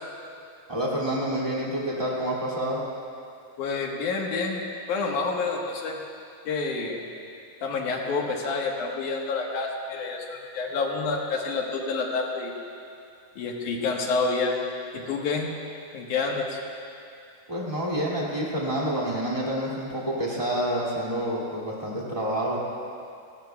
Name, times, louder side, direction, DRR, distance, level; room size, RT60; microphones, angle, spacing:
voice 1, 0.7-2.8 17.5-22.6, equal, 15° right, -6 dB, 1.1 m, -28 dB
voice 2, 3.6-6.0 6.5-7.0 7.6-12.5 13.4-14.6 14.9-15.5 15.9-16.6, left 4 dB, 60° left, 0 dB, 2.3 m, -28 dB
28.0 x 16.5 x 2.3 m, 2.5 s
omnidirectional pair, 4.8 m